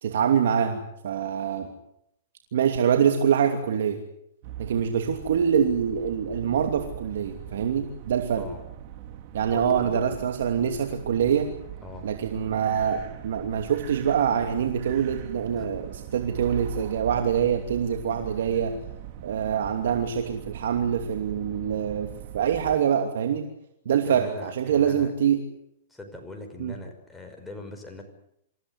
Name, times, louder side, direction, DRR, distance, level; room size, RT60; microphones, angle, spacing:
voice 1, 0.0-1.7 2.5-4.0 4.6-8.5 9.3-11.5 12.0-15.8 16.1-18.8 19.2-23.5 23.8-25.4 26.6-26.8, right 8 dB, 75° right, 5 dB, 2.8 m, -25 dB
sound 1, 4.4-22.8, right 12 dB, 50° right, 2.6 m, -41 dB
voice 2, 9.5-10.2 11.8-12.1 15.6-15.7 23.9-25.1 25.9-28.0, left 2 dB, 5° left, 3 dB, 5.6 m, -41 dB
27.0 x 15.5 x 9.6 m, 0.76 s
hypercardioid pair, 135°, 0 cm